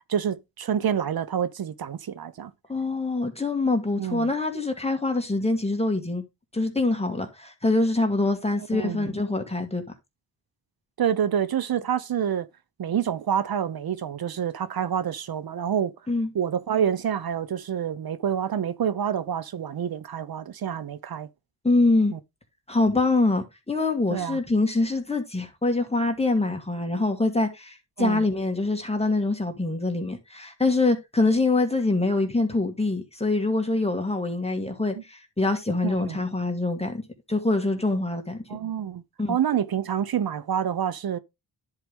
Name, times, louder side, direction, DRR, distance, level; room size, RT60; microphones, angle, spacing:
voice 1, 0.1-2.5 4.0-4.3 8.7-9.1 11.0-12.5 12.8-15.9 16.3-21.3 22.1-22.2 24.1-24.4 28.0-28.2 34.9-35.0 35.8-36.2 38.5-39.0 39.3-41.2, right 8 dB, 60° right, 0.8 m, -27 dB
voice 2, 2.7-6.2 6.5-9.8 16.1-16.3 21.6-22.1 22.7-37.0 37.3-38.4 39.2-39.4, left 2 dB, 15° left, 2.2 m, -24 dB
10.5 x 4.8 x 3.6 m
cardioid pair, 65°, 40 cm